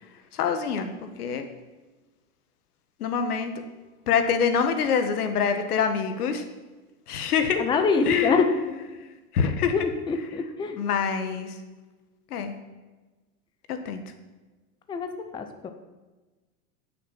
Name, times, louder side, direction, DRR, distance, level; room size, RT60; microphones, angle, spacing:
voice 1, 0.3-1.5 3.0-3.5 4.1-6.4 7.1-7.7 8.0-8.4 8.9-9.9 10.8-11.6 12.3-12.5 13.7-14.0, left 6 dB, 85° left, 7 dB, 1.6 m, -25 dB
voice 2, 7.6-8.5 9.7-10.8 14.9-15.1 15.3-15.7, left 5 dB, 10° left, 6 dB, 0.6 m, -25 dB
13.0 x 6.5 x 6.0 m, 1.2 s
supercardioid pair, 135°, 44 cm